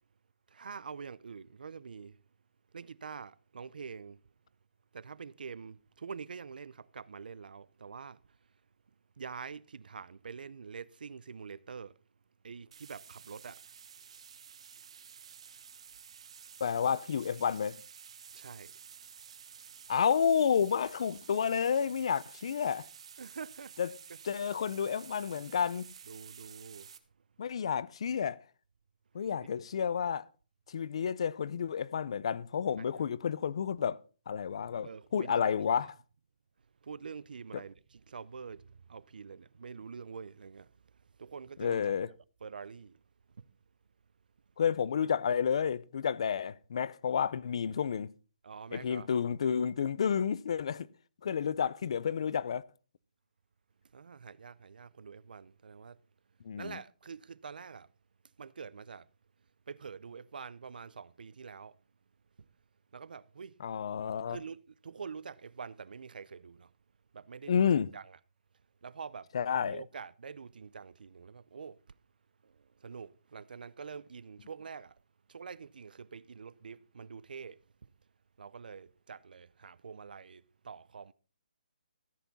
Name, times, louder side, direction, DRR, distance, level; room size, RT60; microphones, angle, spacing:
voice 1, 0.5-2.2 2.7-4.2 4.9-8.2 9.2-12.0 12.4-13.6 18.3-18.7 23.2-23.8 26.1-26.9 32.8-32.9 34.8-35.6 36.8-40.7 41.2-41.9 42.4-43.0 43.4-43.5 48.4-49.1 53.9-56.0 56.6-57.9 58.4-59.1 59.7-61.8 62.9-63.6 64.3-66.7 67.1-67.7 67.9-68.2 68.8-69.3 69.6-71.8 72.4-74.9 75.3-77.9 78.4-81.1, right 5 dB, 75° right, 0.5 m, -46 dB
sound 1, 12.7-27.0, right 7 dB, 40° right, 0.9 m, -52 dB
voice 2, 16.6-17.8 19.9-22.9 23.8-23.9 24.2-25.9 27.4-28.4 29.1-30.2 30.7-34.0 34.3-35.9 41.6-42.1 44.6-48.1 48.7-50.9 51.2-52.6 56.4-56.8 63.6-64.4 67.5-67.9 69.3-69.8, left 7 dB, 40° left, 0.4 m, -30 dB
14.0 x 8.4 x 4.0 m
hypercardioid pair, 175°, 5 cm